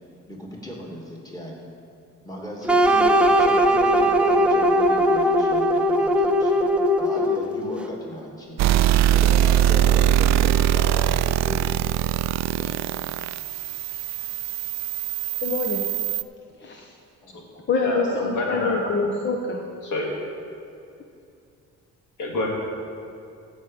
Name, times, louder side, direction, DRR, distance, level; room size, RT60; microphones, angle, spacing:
voice 1, 0.3-1.5 2.2-6.5 7.0-8.6 9.1-11.8 12.6-12.8 17.2-17.4, equal, 10° left, -2 dB, 2.7 m, -36 dB
sound 1, 2.7-7.6, equal, 5° right, 0.9 m, -19 dB
sound 2, 8.6-16.2, right 11 dB, 60° right, 0.4 m, -22 dB
voice 2, 15.4-15.8 16.6-16.9 17.7-19.6, left 4 dB, 40° left, 2 dB, 1.1 m, -25 dB
voice 3, 17.8-19.0 19.8-20.1 22.2-22.5, left 1 dB, 75° left, -1 dB, 2.4 m, -28 dB
15.0 x 5.4 x 7.2 m, 2.5 s
cardioid pair, 90°, 30 cm